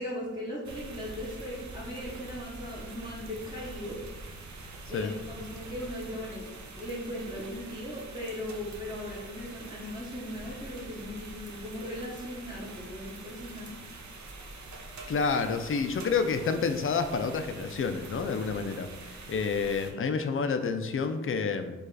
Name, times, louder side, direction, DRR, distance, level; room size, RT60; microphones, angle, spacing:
voice 1, 0.0-4.0 4.9-13.7, left 1 dB, 15° right, -7 dB, 0.8 m, -38 dB
sound 1, 0.6-19.9, right 3 dB, 65° right, 0.7 m, -45 dB
voice 2, 15.1-21.7, left 5 dB, 45° left, 8 dB, 0.4 m, -29 dB
4.7 x 2.4 x 4.6 m, 1.2 s
wide cardioid pair, 125°, 30 cm